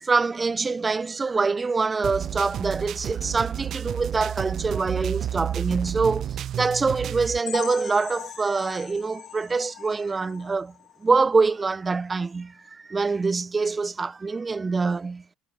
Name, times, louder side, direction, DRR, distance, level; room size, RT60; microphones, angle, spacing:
voice 1, 0.0-6.3 6.6-10.7 11.0-12.5 12.9-15.2, right 4 dB, 25° right, 1.7 m, -25 dB
sound 1, 2.0-7.4, right 10 dB, 50° right, 1.6 m, -31 dB
sound 2, 7.5-11.1 11.5-11.6 12.0-12.1 12.6-12.7, left 14 dB, 60° left, 5.6 m, -40 dB
hypercardioid pair, 70°, 0 cm